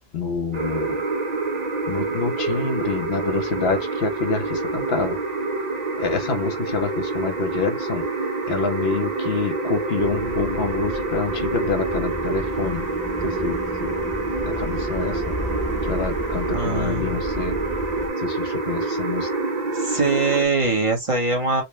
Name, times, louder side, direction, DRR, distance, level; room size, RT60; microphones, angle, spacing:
voice 1, 0.1-1.0 1.9-5.2 6.0-8.1 8.5-12.9 13.2-14.0 14.5-15.5 15.8-17.7 18.2-19.3, left 4 dB, 75° left, 1.1 m, -27 dB
sound 1, 0.5-20.4, right 3 dB, 50° right, 0.6 m, -27 dB
sound 2, 10.0-18.1, equal, 10° left, 0.5 m, -34 dB
voice 2, 16.5-17.2 19.7-21.6, right 3 dB, 30° right, 1.1 m, -22 dB
4.0 x 2.2 x 3.0 m
omnidirectional pair, 1.1 m